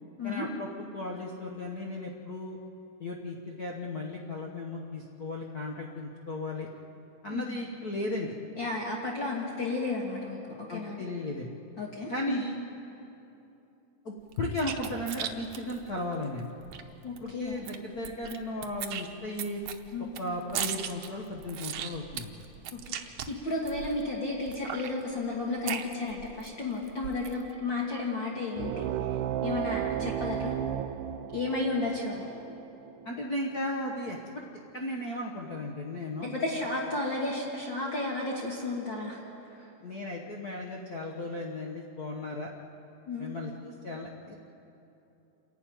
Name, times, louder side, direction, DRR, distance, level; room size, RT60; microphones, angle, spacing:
voice 1, 0.2-2.6 3.0-6.7 7.2-8.3 10.7-11.6 12.1-12.6 14.0-16.5 17.2-19.6 20.2-22.3 30.0-30.1 33.0-34.4 34.7-36.3 39.8-42.5 43.2-44.3, left 1 dB, 70° left, -1 dB, 0.8 m, -35 dB
voice 2, 8.6-10.4 10.7-11.0 11.8-12.4 17.0-17.7 19.9-20.1 22.7-28.8 29.1-30.5 31.3-32.3 36.3-39.2 39.5-39.7 43.1-43.3, left 3 dB, 40° left, -3 dB, 2.1 m, -33 dB
sound 1, 14.3-16.8 17.2-17.3 17.5-18.4 18.6-24.0 24.5-26.5 26.8-27.4, right 9 dB, 65° right, 1.7 m, -37 dB
sound 2, 28.6-33.7, right 10 dB, 85° right, 2.1 m, -34 dB
28.0 x 11.5 x 9.2 m, 2.9 s
omnidirectional pair, 3.6 m